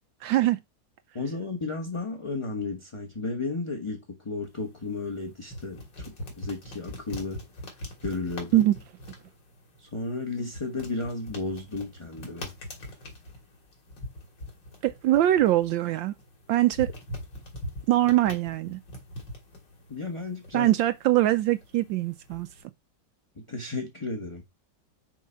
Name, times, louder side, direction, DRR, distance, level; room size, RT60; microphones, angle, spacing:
voice 1, 0.2-0.6 8.5-8.7 14.8-16.1 16.5-16.9 17.9-18.8 20.5-22.5, right 14 dB, 80° right, 1.3 m, -22 dB
voice 2, 1.1-5.8 6.1-7.4 8.0-8.7 9.8-12.5 19.9-20.7 23.5-24.4, left 3 dB, 20° left, 1.0 m, -33 dB
sound 1, 4.4-22.6, left 1 dB, 65° left, 3.1 m, -43 dB
6.1 x 4.6 x 5.6 m
omnidirectional pair, 2.1 m